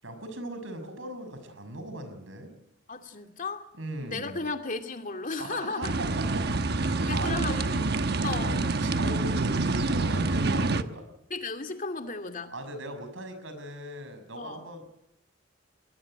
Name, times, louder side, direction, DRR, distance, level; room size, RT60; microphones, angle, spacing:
voice 1, 0.0-2.5 3.8-4.4 5.4-6.1 6.3-7.4 8.4-11.0 12.5-14.9, right 1 dB, 75° right, 9 dB, 6.3 m, -39 dB
voice 2, 2.9-3.6 4.0-5.9 7.1-8.5 11.3-12.5 14.4-14.7, left 3 dB, 40° left, 6 dB, 2.5 m, -35 dB
sound 1, 5.8-10.8, right 3 dB, 55° right, 1.1 m, -27 dB
22.0 x 21.0 x 7.8 m, 0.84 s
head